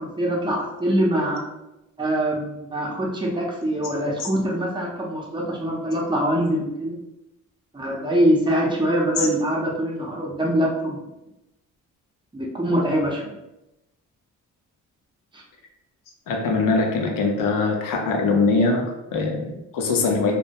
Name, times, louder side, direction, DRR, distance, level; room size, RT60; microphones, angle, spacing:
voice 1, 0.0-1.4 2.0-7.0 7.7-11.0 12.3-13.3 15.3-15.4, right 1 dB, 15° right, -2 dB, 0.6 m, -23 dB
voice 2, 16.3-20.4, left 3 dB, 80° left, 2 dB, 0.6 m, -22 dB
2.1 x 2.1 x 2.7 m, 0.93 s
cardioid pair, 95°, 32 cm